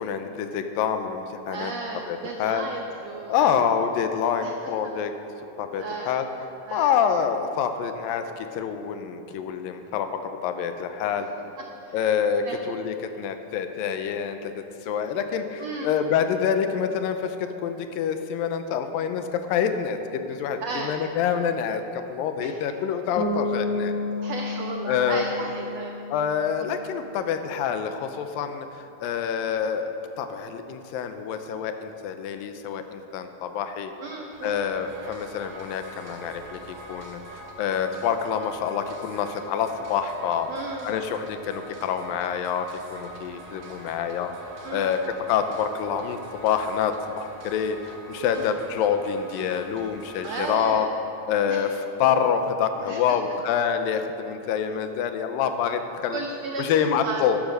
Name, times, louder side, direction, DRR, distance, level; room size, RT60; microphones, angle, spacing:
voice 1, 0.0-1.7 2.1-2.7 3.3-5.1 5.6-6.3 6.7-11.3 11.9-23.9 24.9-25.2 26.1-29.9 30.2-33.9 34.4-36.6 36.9-40.5 40.8-44.3 44.7-50.9 51.3-56.2 56.6-57.4, left 7 dB, 80° left, 8 dB, 2.4 m, -27 dB
voice 2, 1.5-3.6 4.4-4.5 4.8-4.9 5.8-6.1 6.7-7.0 11.2-11.3 11.6-12.0 12.4-12.6 15.6-16.0 20.6-20.9 22.4-22.5 24.2-25.9 34.0-34.7 40.5-40.9 44.6-44.9 48.2-48.5 50.2-50.9 51.5-51.6 52.8-53.2 56.1-57.2, right 4 dB, 85° right, 2 dB, 1.4 m, -34 dB
Bass guitar, 23.2-27.0, left 3 dB, 65° left, 2.0 m, -31 dB
sound 1, 34.3-50.6, right 1 dB, 65° right, 2.8 m, -44 dB
12.0 x 10.5 x 6.7 m, 2.9 s
omnidirectional pair, 4.2 m